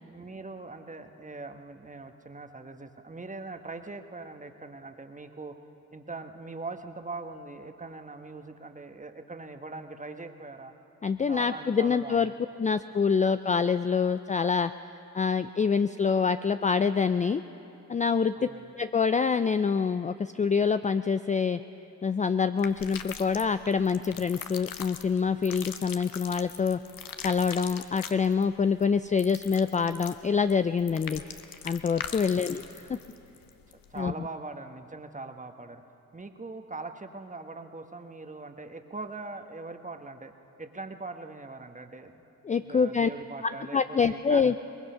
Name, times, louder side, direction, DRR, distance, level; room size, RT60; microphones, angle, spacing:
voice 1, 0.0-5.6 5.9-10.7 11.3-12.4 18.3-18.7 32.3-32.7 33.9-35.8 36.1-40.3 40.6-42.2 42.6-44.4, right 3 dB, 20° right, 7 dB, 1.4 m, -41 dB
voice 2, 11.0-12.3 12.6-14.7 15.1-17.4 17.9-18.3 18.7-21.6 22.0-26.8 27.2-31.2 31.6-32.6 32.9-33.0 34.0-34.1 42.4-43.1 43.7-44.6, left 5 dB, 20° left, 11 dB, 0.4 m, -26 dB
sound 1, 22.6-34.0, left 8 dB, 60° left, 1.1 m, -42 dB
23.0 x 20.0 x 5.7 m, 3.0 s
supercardioid pair, 50°, 38 cm